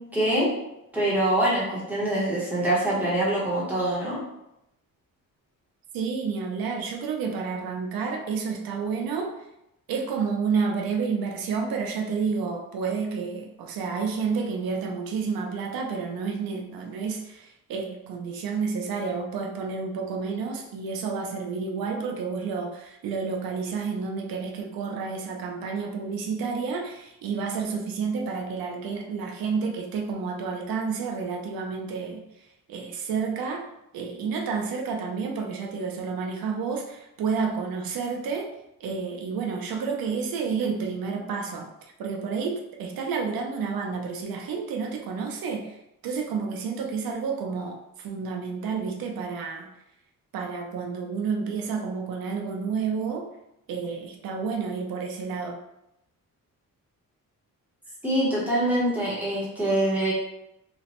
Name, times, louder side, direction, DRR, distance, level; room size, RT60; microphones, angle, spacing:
voice 1, 0.1-0.5 0.9-4.2 58.0-60.1, right 1 dB, 5° right, -7 dB, 0.8 m, -24 dB
voice 2, 5.9-9.3 9.9-32.2 32.7-33.7 33.9-38.5 38.8-41.7 42.0-45.8 46.0-49.7 50.3-53.3 53.7-55.6, right 5 dB, 85° right, 2 dB, 0.5 m, -30 dB
3.0 x 2.0 x 2.8 m, 0.85 s
wide cardioid pair, 170°, 34 cm